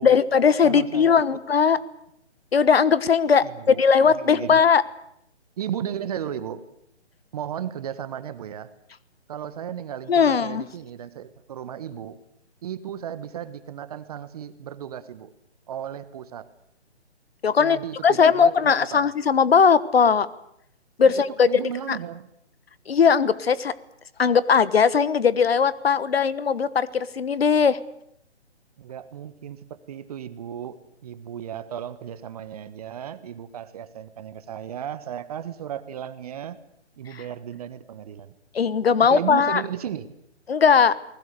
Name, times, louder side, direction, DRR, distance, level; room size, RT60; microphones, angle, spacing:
voice 1, 0.0-1.8 2.5-4.8 10.1-10.6 17.4-20.3 21.0-21.5 21.9-22.0 22.9-23.7 24.2-27.8 38.5-39.6 40.5-41.0, left 6 dB, 60° left, 17 dB, 1.4 m, -19 dB
voice 2, 0.6-1.2 3.4-4.6 5.6-6.6 7.3-8.7 9.3-12.2 12.6-15.3 15.7-16.5 17.6-19.1 21.0-22.3 28.8-36.6 37.0-38.3 39.0-40.1, right 9 dB, 35° right, 13 dB, 1.4 m, -35 dB
28.5 x 20.0 x 6.8 m, 0.73 s
figure-of-eight pair, 145°, 34 cm